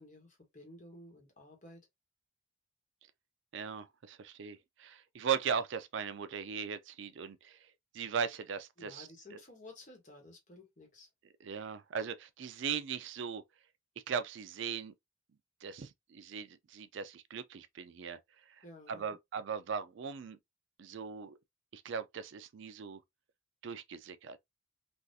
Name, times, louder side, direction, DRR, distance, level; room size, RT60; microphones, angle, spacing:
voice 1, 0.0-1.8 8.8-11.1 18.6-19.1, left 1 dB, 35° left, 1.2 m, -54 dB
voice 2, 3.5-7.6 7.9-9.4 11.4-13.4 14.1-14.9 15.6-18.2 18.5-20.4 20.8-21.4 21.7-23.0 23.6-24.4, right 7 dB, 65° right, 0.4 m, -38 dB
3.5 x 2.4 x 2.6 m
head